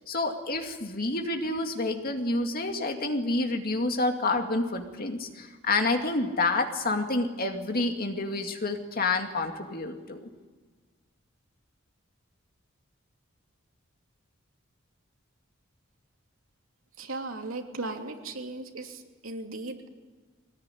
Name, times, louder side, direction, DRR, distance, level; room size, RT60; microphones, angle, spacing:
voice 1, 0.0-10.3, left 2 dB, 45° left, 4 dB, 2.3 m, -28 dB
voice 2, 17.0-19.9, right 2 dB, 80° right, 2 dB, 3.0 m, -37 dB
23.0 x 19.0 x 9.9 m, 1.4 s
head